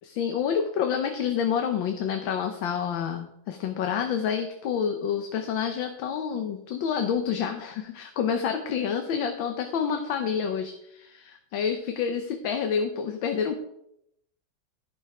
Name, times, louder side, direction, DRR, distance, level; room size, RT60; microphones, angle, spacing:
voice 1, 0.1-13.5, left 7 dB, 80° left, 5 dB, 1.6 m, -28 dB
14.5 x 5.6 x 4.9 m, 0.77 s
omnidirectional pair, 2.1 m